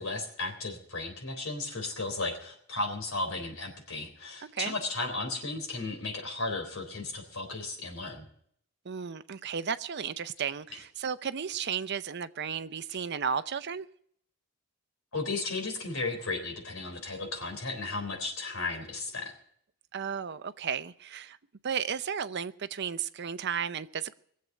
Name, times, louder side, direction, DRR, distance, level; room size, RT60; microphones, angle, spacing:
voice 1, 0.0-8.3 12.9-13.1 15.1-19.3, left 3 dB, 70° left, 3.8 m, -35 dB
voice 2, 8.8-13.9 19.9-21.4 21.6-24.1, right 7 dB, 55° right, 0.6 m, -34 dB
20.0 x 7.7 x 7.9 m
head